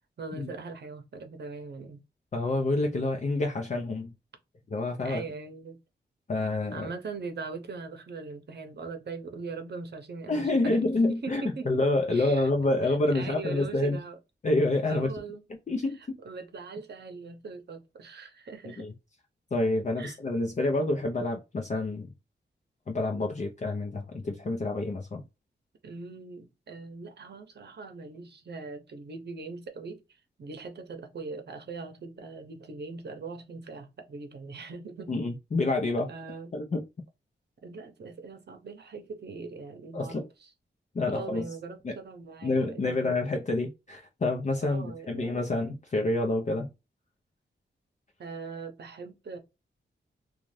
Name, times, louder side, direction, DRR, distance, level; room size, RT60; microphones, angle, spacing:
voice 1, 0.2-2.0 5.0-5.8 6.7-11.7 12.1-12.5 13.1-14.2 14.9-15.4 16.2-18.9 20.0-20.2 25.8-30.0 30.4-35.1 36.1-36.5 37.6-40.3 41.1-43.4 44.6-45.5 48.2-49.4, right 4 dB, 60° right, 0.8 m, -41 dB
voice 2, 2.3-4.1 4.7-5.2 6.3-6.9 10.3-14.0 14.4-15.1 15.7-16.2 18.8-18.9 19.5-22.1 22.9-25.2 35.1-36.1 36.5-36.8 39.9-40.3 40.9-41.5 41.8-41.9 42.4-46.7, left 2 dB, 40° left, 0.6 m, -28 dB
2.6 x 2.4 x 3.1 m
wide cardioid pair, 90°, 19 cm